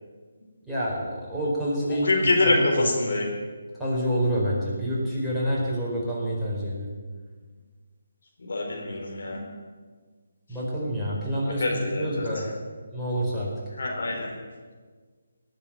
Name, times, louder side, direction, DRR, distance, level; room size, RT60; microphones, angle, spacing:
voice 1, 0.7-2.3 2.8-2.9 3.8-6.9 10.5-12.5 12.9-13.5, equal, ahead, -9 dB, 4.5 m, -27 dB
voice 2, 1.8-3.3 8.4-9.4 11.4-12.2 13.8-14.3, left 2 dB, 60° left, 0 dB, 4.2 m, -25 dB
18.5 x 8.0 x 8.9 m, 1.5 s
figure-of-eight pair, 150°, 0 cm